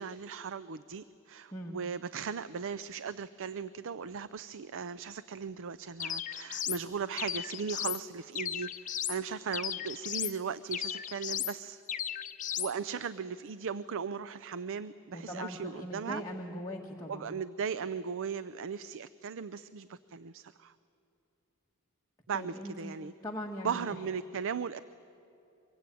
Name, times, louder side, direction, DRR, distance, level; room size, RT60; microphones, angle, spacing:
voice 1, 0.0-11.8 12.6-16.2 17.1-20.7 22.3-23.1 23.6-24.8, right 6 dB, 65° right, 15 dB, 0.5 m, -37 dB
sound 1, 6.0-6.8 7.2-8.0 8.3-9.2 9.5-10.4 10.7-11.5 11.9-12.7, left 10 dB, 35° left, 0.9 m, -35 dB
voice 2, 15.1-17.3 22.3-23.0 23.2-23.9, left 1 dB, 15° left, -2 dB, 1.6 m, -40 dB
24.0 x 23.0 x 9.2 m, 2.8 s
head